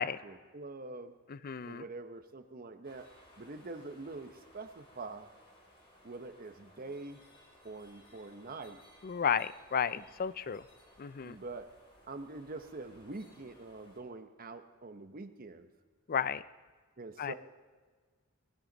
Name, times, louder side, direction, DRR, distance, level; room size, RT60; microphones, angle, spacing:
voice 1, 0.0-1.1 1.6-3.1 3.4-5.3 6.0-7.2 7.6-8.8 9.9-10.0 11.2-11.7 12.1-15.7 17.0-17.3, right 3 dB, 40° right, 9 dB, 0.9 m, -45 dB
voice 2, 1.3-1.8 9.0-10.6 11.0-11.4 16.1-16.4 17.2-17.3, left 7 dB, 40° left, 16 dB, 0.4 m, -33 dB
sound 1, 2.8-14.0, left 1 dB, 25° left, 3.4 m, -61 dB
19.5 x 16.0 x 4.0 m, 1.5 s
head